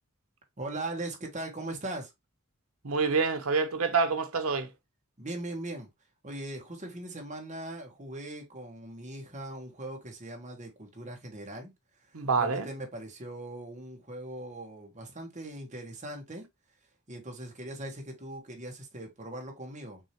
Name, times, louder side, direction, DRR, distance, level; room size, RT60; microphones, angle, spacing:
voice 1, 0.6-2.1 5.2-5.9 6.2-11.7 12.1-16.4 17.1-20.0, right 1 dB, 35° right, 1.4 m, -40 dB
voice 2, 2.8-4.7 12.1-12.7, right 4 dB, 80° right, 0.9 m, -27 dB
6.1 x 2.8 x 3.0 m
head